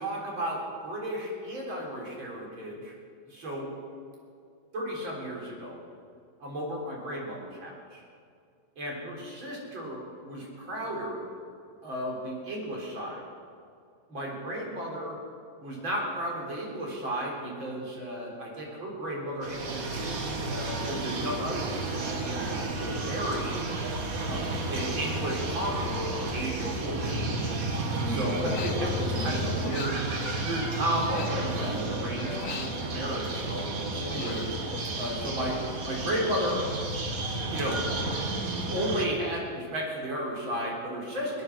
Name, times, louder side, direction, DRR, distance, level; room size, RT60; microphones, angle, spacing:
voice 1, 0.0-2.9 3.3-3.7 4.7-5.8 6.4-8.0 8.8-11.2 11.8-13.2 14.1-15.2 15.6-23.6 24.3-27.3 28.0-34.5 34.9-36.6 37.5-37.8 38.7-41.4, equal, 85° right, -3 dB, 4.6 m, -34 dB
sound 1, 19.4-39.1, right 2 dB, 50° right, 1.8 m, -32 dB
Human voice, 28.3-29.2 29.5-31.9 32.2-33.5 33.8-35.6 35.9-36.3, left 6 dB, 55° left, 1.0 m, -42 dB
21.0 x 10.5 x 6.1 m, 2.3 s
omnidirectional pair, 2.1 m